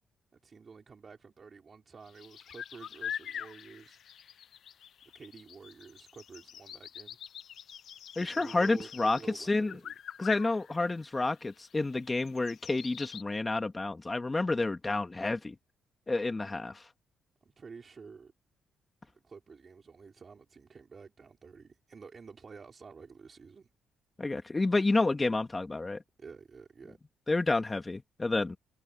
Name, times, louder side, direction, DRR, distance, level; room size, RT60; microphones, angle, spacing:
voice 1, 0.3-4.0 5.1-7.2 8.2-10.0 17.5-18.3 19.2-23.7 26.2-27.0, right 5 dB, 40° right, 5.2 m, -50 dB
sound 1, 2.1-13.2, left 9 dB, 65° left, 1.1 m, -44 dB
voice 2, 8.2-9.2 9.5-9.7 10.2-15.5 16.1-16.8 24.2-26.0 27.3-28.6, left 3 dB, 20° left, 2.3 m, -29 dB
cardioid pair, 90°, 0 cm